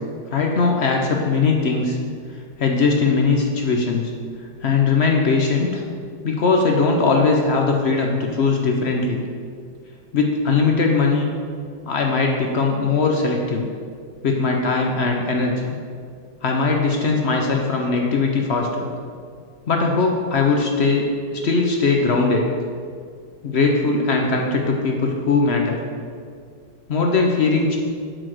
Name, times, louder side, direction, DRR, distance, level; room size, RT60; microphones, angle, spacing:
voice 1, 0.3-2.0 2.6-4.1 4.6-5.8 6.2-9.2 10.1-11.3 11.9-13.7 14.2-15.7 16.4-18.9 19.7-21.1 21.3-22.5 23.4-25.8 26.9-27.8, left 4 dB, 80° left, 1 dB, 0.5 m, -20 dB
9.0 x 4.1 x 6.3 m, 2.1 s
omnidirectional pair, 2.1 m